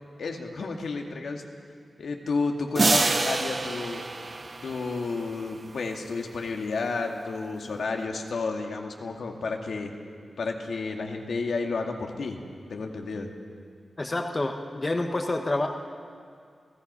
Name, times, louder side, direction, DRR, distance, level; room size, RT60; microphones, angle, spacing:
voice 1, 0.2-1.4 2.0-4.0 4.6-9.9 10.4-12.4 12.7-13.3, left 4 dB, 85° left, 2 dB, 2.0 m, -31 dB
sound 1, 2.8-5.5, right 3 dB, 35° right, 0.8 m, -27 dB
voice 2, 14.0-15.7, left 2 dB, 25° left, 4 dB, 1.1 m, -28 dB
29.0 x 17.0 x 5.6 m, 2.2 s
wide cardioid pair, 170°, 0 cm